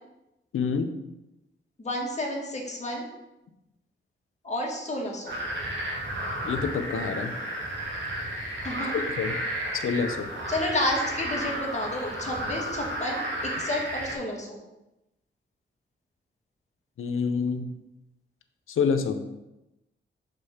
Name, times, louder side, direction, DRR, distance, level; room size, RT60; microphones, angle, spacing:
voice 1, 0.5-0.9 6.4-7.3 8.9-9.3 9.7-10.3 17.0-17.7 18.7-19.2, left 5 dB, 80° left, 7 dB, 0.7 m, -27 dB
voice 2, 1.8-3.1 4.4-5.4 8.6-9.0 10.5-13.2 13.6-14.6, left 1 dB, 35° left, -1 dB, 1.6 m, -30 dB
sound 1, 5.3-14.2, right 1 dB, 60° right, 1.8 m, -32 dB
5.3 x 3.6 x 5.6 m, 0.94 s
cardioid pair, 80°, 21 cm